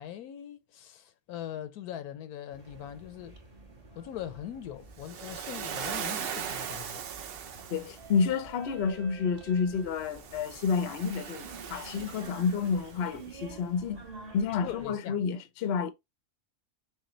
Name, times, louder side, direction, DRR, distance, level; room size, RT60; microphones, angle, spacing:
voice 1, 0.0-3.4 4.0-7.1 14.6-15.2, left 11 dB, 80° left, 1.1 m, -41 dB
sound 1, 2.5-14.9, right 4 dB, 25° right, 1.1 m, -50 dB
Waves surf, 5.0-8.2 10.0-13.1, right 8 dB, 65° right, 0.5 m, -39 dB
voice 2, 7.7-14.0 14.3-15.9, left 6 dB, 55° left, 0.7 m, -30 dB
6.5 x 2.2 x 3.0 m
omnidirectional pair, 1.7 m